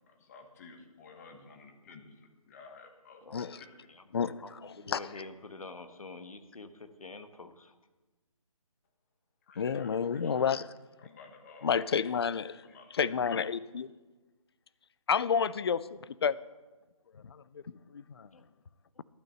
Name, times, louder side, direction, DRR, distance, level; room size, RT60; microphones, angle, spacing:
voice 1, 0.1-3.7 9.4-10.6 11.0-11.9 12.6-13.4, left 4 dB, 25° left, 1.3 m, -53 dB
voice 2, 3.2-3.6 3.9-7.8 18.3-18.4 18.9-19.0, left 3 dB, 75° left, 1.2 m, -47 dB
voice 3, 9.6-10.7 11.6-12.6 12.9-13.9 15.1-16.4 17.1-18.3, left 6 dB, 45° left, 0.4 m, -30 dB
12.0 x 6.3 x 7.6 m
figure-of-eight pair, 155°, 18 cm